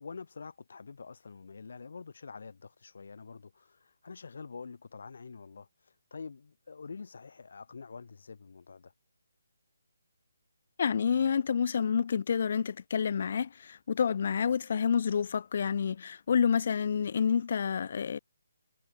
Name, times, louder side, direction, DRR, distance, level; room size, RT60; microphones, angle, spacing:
voice 1, 0.0-8.9, left 5 dB, 65° left, 5.5 m, -46 dB
voice 2, 10.8-18.2, left 7 dB, 50° left, 3.4 m, -28 dB
hypercardioid pair, 160°, 0 cm